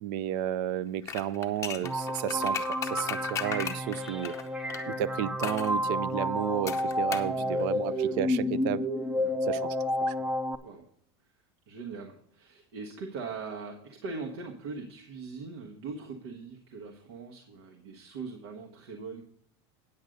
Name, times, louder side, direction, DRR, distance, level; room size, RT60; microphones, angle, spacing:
voice 1, 0.0-4.4 4.8-8.8 9.4-9.8 10.0-10.1, right 11 dB, 55° right, 0.5 m, -32 dB
sound 1, 1.0-4.8 5.4-5.7 6.7-7.3 7.6-7.7, left 8 dB, 20° left, 0.8 m, -36 dB
sound 2, 1.8-10.6, left 1 dB, 5° right, 0.5 m, -30 dB
voice 2, 7.3-8.2 9.1-9.4 10.6-10.9 11.7-19.3, right 4 dB, 85° right, 1.4 m, -41 dB
9.4 x 7.9 x 5.1 m
supercardioid pair, 155°, 14 cm